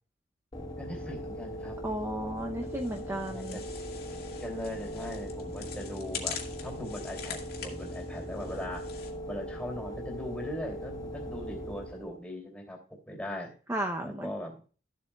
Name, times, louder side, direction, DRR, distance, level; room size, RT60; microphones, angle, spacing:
sound 1, 0.5-12.2, equal, 25° left, 1.9 m, -40 dB
voice 1, 0.8-1.8 2.6-3.6 4.3-8.9 9.3-13.5 14.0-14.6, left 1 dB, 5° left, 1 dB, 2.8 m, -40 dB
voice 2, 1.8-3.6 13.7-14.3, right 1 dB, 15° right, 2 dB, 0.7 m, -34 dB
sound 2, 2.7-9.1, left 7 dB, 60° left, 2.0 m, -44 dB
14.0 x 7.6 x 2.3 m, 0.36 s
head